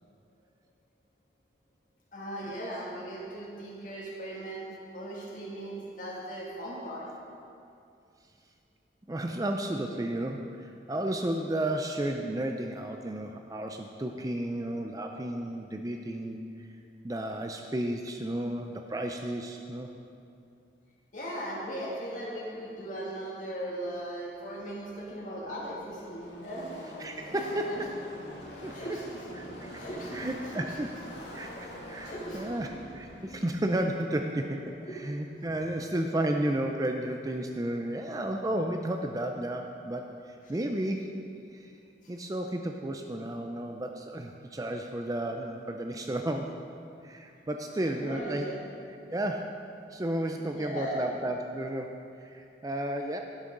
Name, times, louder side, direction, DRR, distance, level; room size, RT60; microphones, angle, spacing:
voice 1, 2.1-7.1 21.1-26.7 27.3-27.8 28.7-29.2 29.7-30.8 31.5-31.6 32.0-32.4 34.7-35.0 42.0-42.1 47.8-48.6 50.5-51.2, right 1 dB, 45° left, -5 dB, 2.4 m, -38 dB
voice 2, 9.1-16.7 17.0-19.9 27.0-27.9 28.6-29.0 29.4-29.8 30.1-30.9 31.3-41.1 41.5-41.7 42.1-46.6 47.0-48.5 49.1-49.5 49.9-53.2, right 1 dB, 20° right, 3 dB, 0.4 m, -33 dB
Car passing by / Race car auto racing, 24.8-35.4, equal, 75° left, 2.0 m, -45 dB
11.5 x 11.0 x 3.8 m, 2.5 s
head